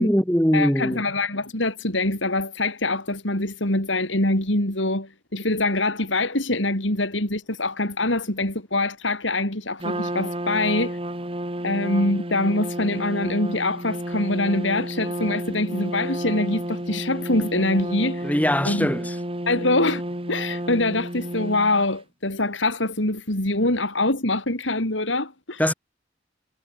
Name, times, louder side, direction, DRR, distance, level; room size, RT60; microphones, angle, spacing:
voice 1, 0.0-1.0 18.2-19.1 25.6-25.7, equal, 10° left, 3.5 m, -21 dB
voice 2, 0.5-11.0 11.6-18.3 18.7-18.9 19.5-20.0 20.3-25.6, left 2 dB, 75° left, 5.3 m, -24 dB
Trumpet, 9.8-21.9, right 1 dB, 30° right, 3.1 m, -31 dB
head